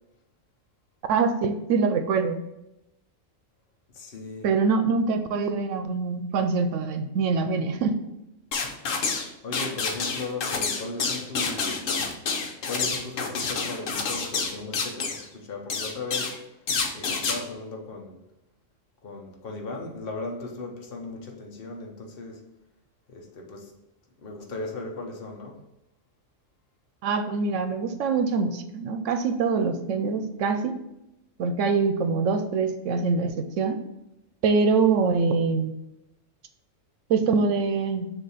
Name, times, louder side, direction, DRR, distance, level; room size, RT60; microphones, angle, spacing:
voice 1, 1.1-2.4 4.4-8.0 27.0-30.7 31.4-33.8 34.4-35.7 37.1-38.1, right 4 dB, 75° right, 0.9 m, -24 dB
voice 2, 3.9-4.5 9.4-11.9 12.7-16.4 16.9-18.2 19.0-22.4 23.1-23.7 24.2-25.6, left 3 dB, 50° left, 1.2 m, -37 dB
sound 1, 8.5-9.3 9.5-15.3 15.7-16.4 16.7-17.4, left 4 dB, 85° left, 1.2 m, -28 dB
6.5 x 2.8 x 5.6 m
omnidirectional pair, 1.3 m